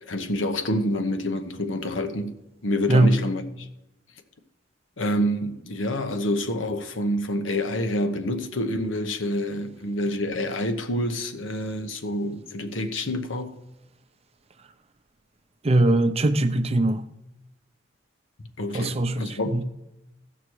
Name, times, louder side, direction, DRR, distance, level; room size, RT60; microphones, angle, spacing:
voice 1, 0.0-2.4 2.6-3.7 5.0-13.5 18.6-19.6, left 1 dB, 90° left, 1.0 m, -27 dB
voice 2, 15.6-17.0 18.7-19.6, right 2 dB, 35° right, 0.6 m, -21 dB
16.0 x 6.0 x 4.7 m
head